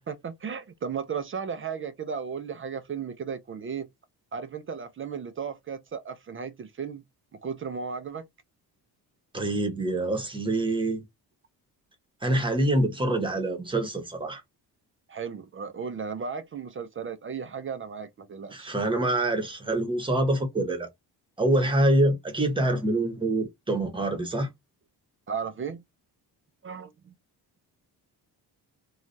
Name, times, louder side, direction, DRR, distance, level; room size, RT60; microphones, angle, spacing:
voice 1, 0.1-3.9 4.3-7.0 7.4-8.2 15.1-18.7 25.3-25.8 26.6-27.1, right 6 dB, 35° right, 0.4 m, -35 dB
voice 2, 9.3-11.0 12.2-14.4 18.5-20.9 21.4-24.5, right 1 dB, 15° right, 0.9 m, -25 dB
3.1 x 2.3 x 2.5 m
cardioid pair, 135°, 39 cm